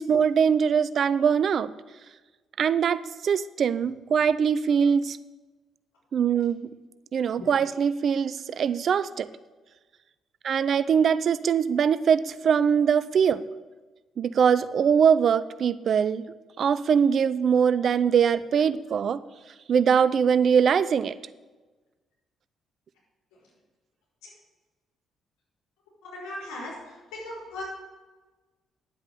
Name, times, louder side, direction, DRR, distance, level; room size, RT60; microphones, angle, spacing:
voice 1, 0.0-1.7 2.6-5.2 6.1-6.7 7.1-9.3 10.4-13.4 14.2-19.2 19.7-21.1, right 7 dB, 55° right, 16 dB, 0.4 m, -22 dB
voice 2, 26.0-27.6, left 2 dB, 70° left, -4 dB, 4.6 m, -38 dB
10.0 x 8.1 x 6.7 m, 1.2 s
hypercardioid pair, 40°, 0 cm